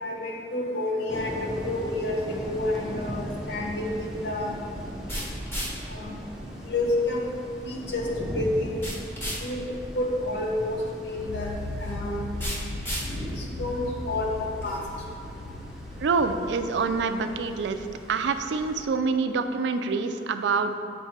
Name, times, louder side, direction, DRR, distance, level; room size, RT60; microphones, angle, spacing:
voice 1, 0.0-4.5 5.9-6.2 6.7-7.3 7.6-8.0 8.3-8.8 9.4-9.6 9.9-11.5 11.8-12.3 13.4-14.8, left 2 dB, 75° left, -1 dB, 1.0 m, -29 dB
sound 1, 1.1-18.9, equal, 5° right, 0.7 m, -39 dB
sound 2, 2.5-15.0, equal, 15° left, 1.1 m, -39 dB
sound 3, 11.2-17.7, left 2 dB, 60° left, 0.3 m, -38 dB
voice 2, 16.0-20.8, right 4 dB, 85° right, 8 dB, 0.4 m, -26 dB
8.8 x 3.2 x 4.3 m, 2.4 s
head